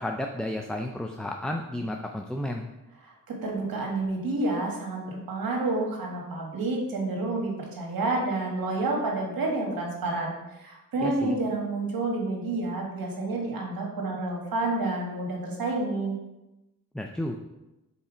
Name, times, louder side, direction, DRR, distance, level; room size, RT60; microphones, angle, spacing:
voice 1, 0.0-2.7 11.0-11.3 16.9-17.4, left 1 dB, ahead, 3 dB, 0.4 m, -32 dB
voice 2, 3.0-16.1, right 2 dB, 75° right, 0 dB, 1.5 m, -29 dB
5.6 x 4.1 x 4.9 m, 0.99 s
cardioid pair, 75°, 35 cm